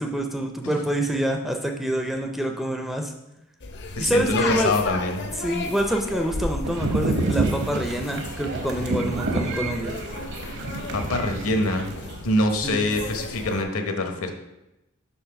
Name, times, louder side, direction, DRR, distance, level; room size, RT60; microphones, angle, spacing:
voice 1, 0.0-3.1 3.9-4.7 5.4-9.9 12.6-12.9, right 1 dB, ahead, 3 dB, 0.4 m, -26 dB
sound 1, 3.6-13.6, left 3 dB, 50° left, 0.6 m, -35 dB
voice 2, 4.0-5.3 10.9-11.9 12.2-14.3, left 2 dB, 70° left, 4 dB, 0.9 m, -24 dB
sound 2, 6.6-12.3, right 2 dB, 55° right, 0.8 m, -28 dB
5.6 x 3.9 x 5.8 m, 0.93 s
head